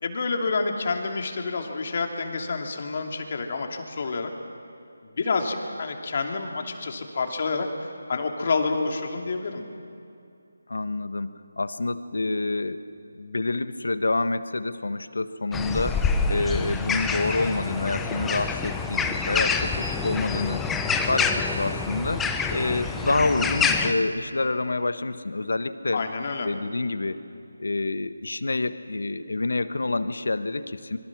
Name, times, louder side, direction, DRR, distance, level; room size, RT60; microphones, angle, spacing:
voice 1, 0.0-4.3 5.0-9.6 20.7-21.0 25.9-26.5, left 4 dB, 45° left, 3 dB, 2.7 m, -28 dB
voice 2, 10.7-12.8 13.1-16.0 16.3-20.7 21.1-26.0 26.4-27.2 27.6-31.0, left 2 dB, 70° left, 12 dB, 1.3 m, -27 dB
sound 1, 15.5-23.9, left 5 dB, 5° left, 0.9 m, -27 dB
26.0 x 24.0 x 6.1 m, 2.6 s
figure-of-eight pair, 160°, 0 cm